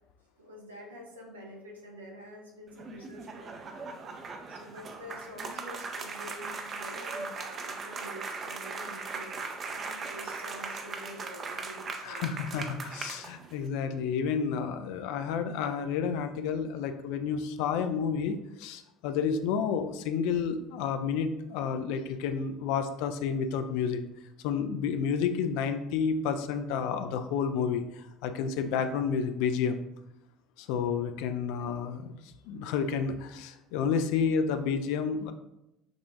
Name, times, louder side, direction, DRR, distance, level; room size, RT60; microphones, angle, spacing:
voice 1, 0.4-3.7 4.5-12.3, equal, 85° right, -2 dB, 0.8 m, -47 dB
sound 1, 2.7-13.7, right 4 dB, 35° right, 0.5 m, -39 dB
voice 2, 12.0-24.0 24.4-29.8 30.6-32.2 32.5-35.3, left 6 dB, 60° left, 8 dB, 0.3 m, -30 dB
6.2 x 2.4 x 2.4 m, 0.88 s
figure-of-eight pair, 65°, 0 cm